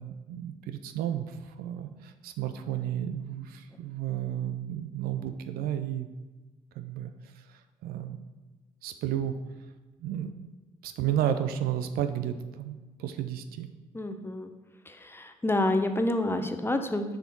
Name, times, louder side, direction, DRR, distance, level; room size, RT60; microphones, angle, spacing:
voice 1, 0.0-6.1 6.7-8.2 8.8-9.4 10.0-10.3 10.8-13.7, right 10 dB, 65° right, 9 dB, 0.5 m, -32 dB
voice 2, 13.9-14.5 14.9-17.2, left 1 dB, 15° left, 7 dB, 0.8 m, -28 dB
6.9 x 5.8 x 4.5 m, 1.2 s
figure-of-eight pair, 45°, 17 cm